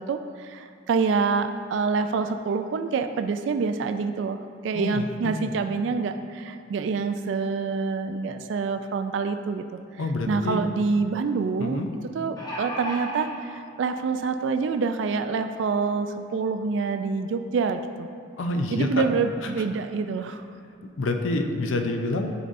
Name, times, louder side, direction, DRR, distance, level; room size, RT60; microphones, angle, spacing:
voice 1, 0.1-4.4 4.6-9.6 10.3-11.9 12.1-18.1 18.7-20.4, right 4 dB, 75° right, 8 dB, 0.3 m, -26 dB
voice 2, 4.7-5.3 10.0-10.6 11.6-11.9 18.4-19.0 21.0-22.3, left 2 dB, 85° left, 5 dB, 0.5 m, -27 dB
sound 1, 9.9-10.0 10.4-10.5 12.0-13.3 14.2-14.3 14.7-14.8, equal, 20° left, 1.1 m, -34 dB
10.5 x 5.3 x 2.6 m, 2.3 s
head